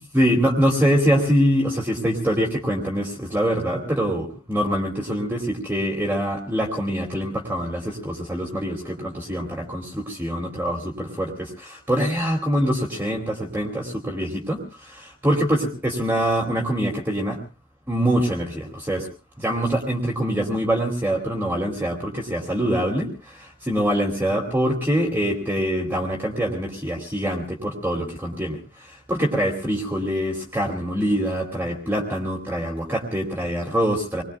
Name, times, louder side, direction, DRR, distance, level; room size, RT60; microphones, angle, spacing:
voice 1, 0.1-17.4 17.9-19.1 19.4-34.2, equal, 10° right, -1 dB, 2.5 m, -24 dB
27.0 x 21.0 x 2.3 m, 0.34 s
head